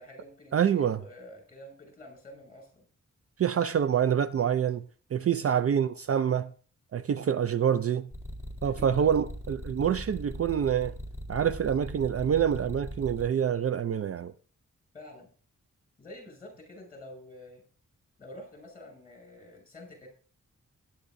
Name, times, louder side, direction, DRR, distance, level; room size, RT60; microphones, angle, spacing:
voice 1, 0.0-2.8 5.3-5.6 7.2-7.4 8.6-9.3 14.9-15.3 16.0-17.6 18.2-20.1, left 1 dB, 25° left, 6.4 m, -48 dB
voice 2, 0.5-1.0 3.4-4.8 5.1-6.5 6.9-8.1 8.6-11.0 11.3-14.3, right 8 dB, 50° right, 0.4 m, -26 dB
sound 1, 8.1-13.2, left 1 dB, 10° right, 3.7 m, -39 dB
17.0 x 11.0 x 2.6 m
wide cardioid pair, 160°, 31 cm